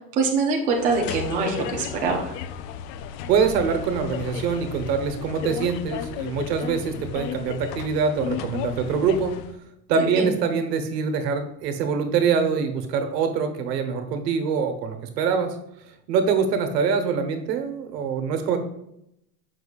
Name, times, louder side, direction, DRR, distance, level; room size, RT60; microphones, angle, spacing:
voice 1, 0.2-2.3 9.9-10.3, right 4 dB, 15° right, -1 dB, 0.5 m, -24 dB
sound 1, 0.7-9.6, left 9 dB, 80° left, 0.6 m, -34 dB
voice 2, 3.3-9.4 9.9-15.5 16.1-18.6, right 6 dB, 85° right, 7 dB, 1.2 m, -24 dB
7.1 x 5.9 x 2.4 m, 0.79 s
supercardioid pair, 170°, 48 cm